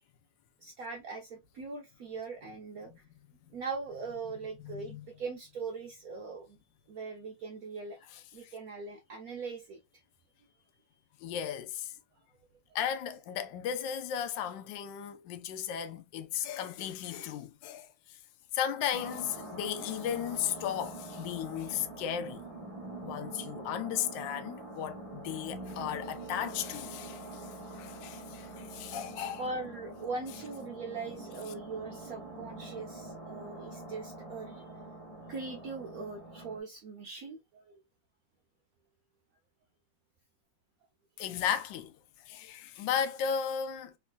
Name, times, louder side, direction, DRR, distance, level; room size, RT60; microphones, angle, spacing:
voice 1, 0.6-3.0 3.5-6.6 6.9-8.0 8.3-10.0 29.4-34.6 35.3-37.8, right 4 dB, 80° right, 0.8 m, -41 dB
voice 2, 4.6-5.1 8.1-8.5 11.2-11.9 12.7-18.2 18.5-22.4 23.0-29.4 41.2-41.9 42.3-43.9, left 9 dB, 70° left, 1.2 m, -35 dB
sound 1, 18.9-36.6, right 2 dB, 45° right, 0.4 m, -45 dB
3.5 x 3.0 x 2.3 m
omnidirectional pair, 2.3 m